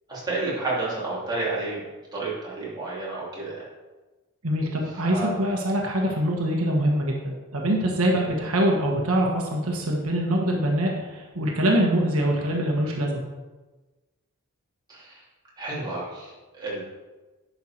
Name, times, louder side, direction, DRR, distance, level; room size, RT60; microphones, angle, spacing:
voice 1, 0.1-1.8 2.1-3.6 5.0-5.4 14.9-15.2 15.6-16.8, right 2 dB, 20° right, -7 dB, 3.0 m, -30 dB
voice 2, 4.4-13.3, right 1 dB, 80° right, 0 dB, 1.4 m, -24 dB
10.5 x 5.8 x 4.4 m, 1.2 s
head